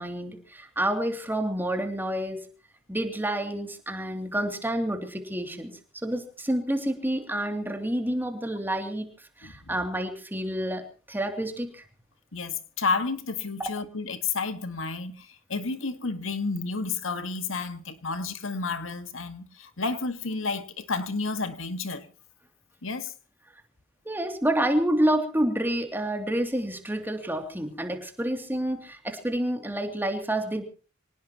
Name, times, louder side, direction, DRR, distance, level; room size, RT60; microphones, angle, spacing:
voice 1, 0.0-2.4 2.9-9.1 9.4-11.8 24.0-30.6, right 1 dB, 10° right, 2.9 m, -28 dB
voice 2, 9.4-9.8 12.3-22.1 22.8-23.1, left 4 dB, 90° left, 1.8 m, -31 dB
25.0 x 18.5 x 3.0 m
head